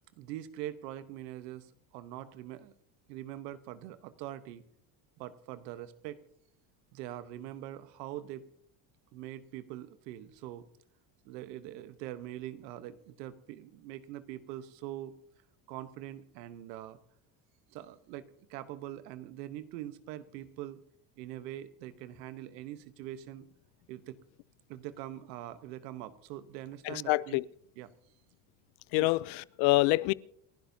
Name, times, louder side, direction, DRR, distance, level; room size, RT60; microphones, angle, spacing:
voice 1, 0.2-2.7 3.1-4.6 5.2-6.2 6.9-8.4 9.1-10.6 11.2-15.1 15.7-17.0 17.7-20.8 21.2-23.5 23.9-24.2 24.7-27.4 27.8-27.9 29.0-29.1, right 13 dB, 90° right, 1.1 m, -43 dB
voice 2, 26.8-27.4 28.9-30.1, left 21 dB, 75° left, 0.6 m, -26 dB
29.0 x 11.5 x 2.7 m
supercardioid pair, 95°, 48 cm